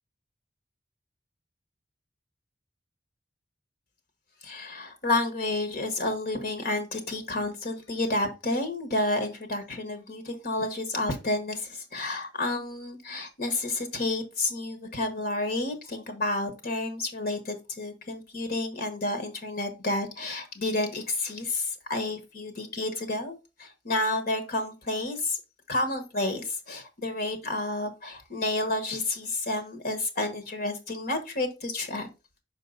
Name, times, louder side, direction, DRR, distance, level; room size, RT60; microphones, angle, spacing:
voice 1, 4.4-25.4 25.7-32.1, left 2 dB, 55° left, 1.3 m, -30 dB
6.1 x 4.6 x 3.8 m
head